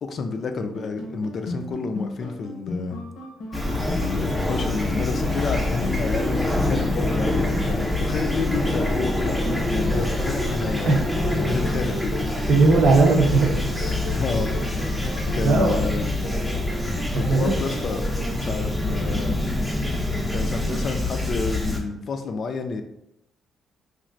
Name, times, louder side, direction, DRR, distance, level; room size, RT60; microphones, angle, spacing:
voice 1, 0.0-3.0 3.9-11.0 11.4-12.3 14.1-14.7 15.3-16.1 17.1-18.0 18.4-19.4 20.1-22.8, left 4 dB, 55° left, 6 dB, 0.4 m, -30 dB
sound 1, 0.7-18.3, left 1 dB, 85° left, 0.7 m, -37 dB
Fowl / Chirp tweet, 3.5-21.8, left 1 dB, ahead, 0.5 m, -25 dB
voice 2, 9.8-10.1 10.9-11.0 12.5-13.7 15.0-15.1 15.4-15.8 17.1-17.6, right 3 dB, 65° right, 0 dB, 0.6 m, -19 dB
3.0 x 2.4 x 2.5 m, 0.82 s
cardioid pair, 90°, 0 cm